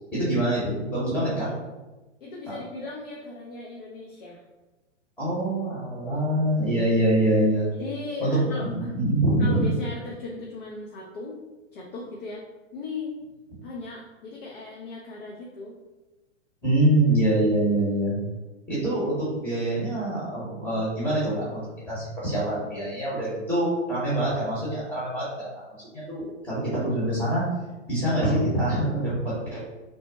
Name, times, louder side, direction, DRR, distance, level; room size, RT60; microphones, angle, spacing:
voice 1, 0.1-1.5 2.5-2.6 5.2-7.7 8.2-9.6 16.6-18.2 18.7-21.6 21.9-25.5 25.9-27.4 27.9-29.7, right 1 dB, 5° left, -9 dB, 1.0 m, -25 dB
voice 2, 2.2-4.4 7.7-8.9 9.4-11.4 11.7-12.4 12.7-13.2 13.6-15.8, left 3 dB, 50° left, -2 dB, 0.7 m, -37 dB
3.4 x 2.1 x 4.0 m, 1.1 s
hypercardioid pair, 145°, 37 cm